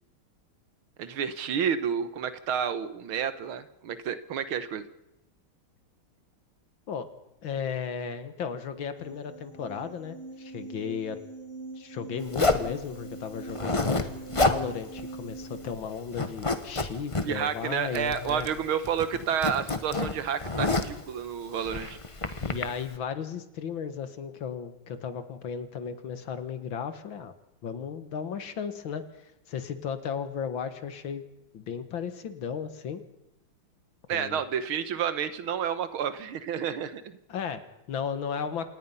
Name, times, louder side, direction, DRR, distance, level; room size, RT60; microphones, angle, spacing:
voice 1, 1.0-4.9 17.2-22.0 34.1-37.2, right 8 dB, 75° right, 12 dB, 2.0 m, -30 dB
voice 2, 7.4-11.2 11.8-18.5 22.4-27.3 27.6-31.2 31.5-33.0 34.1-34.4 37.3-38.7, left 7 dB, 65° left, 10 dB, 2.1 m, -35 dB
sound 1, 8.9-15.7, right 3 dB, 40° left, 5.9 m, -43 dB
Zipper (clothing), 12.3-12.7 13.5-14.1 14.3-14.6 15.0-15.1 15.4-15.8 16.1-17.3 18.0-18.6 18.8-21.0 21.6-22.6, left 2 dB, 20° left, 1.0 m, -28 dB
27.0 x 18.5 x 5.6 m, 0.88 s
omnidirectional pair, 2.3 m